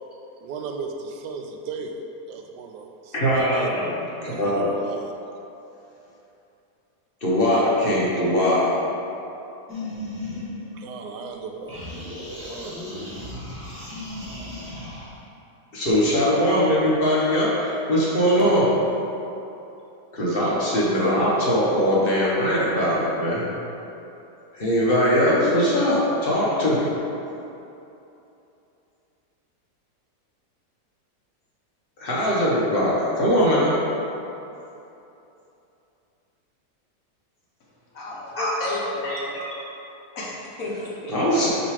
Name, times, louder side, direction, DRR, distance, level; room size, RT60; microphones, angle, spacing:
voice 1, 0.4-3.7 4.2-5.1 10.7-11.8 12.5-12.8, right 4 dB, 85° right, 3 dB, 1.2 m, -36 dB
voice 2, 3.1-3.9 4.2-4.9 7.2-8.8 15.7-18.8 20.1-23.5 24.5-26.9 32.0-33.8 38.3-38.5 39.0-39.5 41.1-41.5, equal, 40° left, -6 dB, 1.0 m, -21 dB
sound 1, 9.7-11.3 11.7-15.2, left 1 dB, 10° right, 1.2 m, -35 dB
voice 3, 37.9-39.3 40.2-41.1, left 2 dB, 60° left, -4 dB, 1.3 m, -32 dB
6.5 x 3.1 x 4.8 m, 2.9 s
omnidirectional pair, 1.8 m